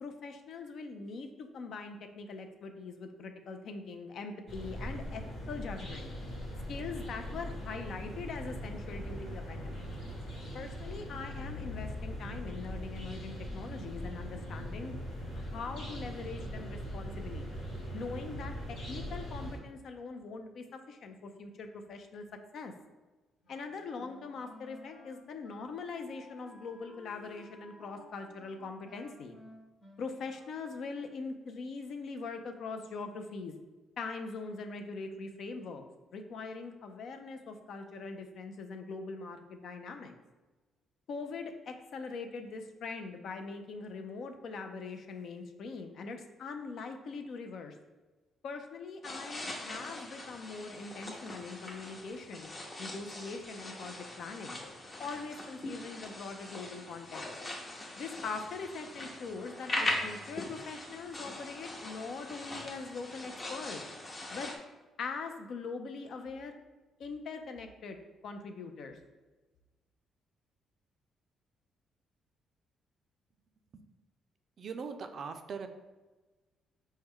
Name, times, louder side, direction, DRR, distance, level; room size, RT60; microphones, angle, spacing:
voice 1, 0.0-5.2 5.5-6.1 6.7-9.9 10.5-14.9 15.3-17.5 17.9-22.3 22.5-22.7 23.5-29.4 30.0-33.5 34.0-35.8 36.1-40.1 41.1-47.7 48.4-52.5 52.8-54.6 55.0-57.2 58.0-63.8 64.3-64.5 65.0-66.5 67.0-68.0 68.2-69.0, left 4 dB, 65° left, 6 dB, 0.4 m, -42 dB
sound 1, 4.5-19.6, equal, 85° left, 1.2 m, -41 dB
Wind instrument woodwind instrument, 23.4-30.9, left 2 dB, 50° left, 1.0 m, -56 dB
sound 2, 49.0-64.6, left 1 dB, 30° left, 0.7 m, -41 dB
voice 2, 74.6-75.7, right 5 dB, 55° right, 8 dB, 0.3 m, -40 dB
4.5 x 2.1 x 3.5 m, 1.2 s
cardioid pair, 90°, 0 cm